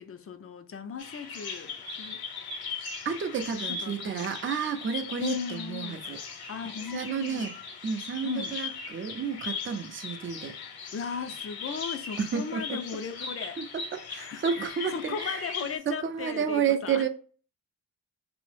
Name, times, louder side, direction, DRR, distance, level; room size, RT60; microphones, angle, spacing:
voice 1, 0.0-2.2 3.7-4.3 5.2-6.1 6.5-7.5 8.2-8.6 10.9-13.6 14.1-14.5 14.9-17.1, left 6 dB, 35° left, 0.4 m, -37 dB
Bird vocalization bird call bird song, 1.0-15.8, left 5 dB, 60° left, 0.7 m, -39 dB
voice 2, 3.0-6.2 6.9-7.5 7.8-10.5 12.2-12.8 13.6-13.8 14.1-15.4 15.9-17.1, right 7 dB, 30° right, 0.4 m, -31 dB
2.8 x 2.0 x 3.1 m
cardioid pair, 70°, 41 cm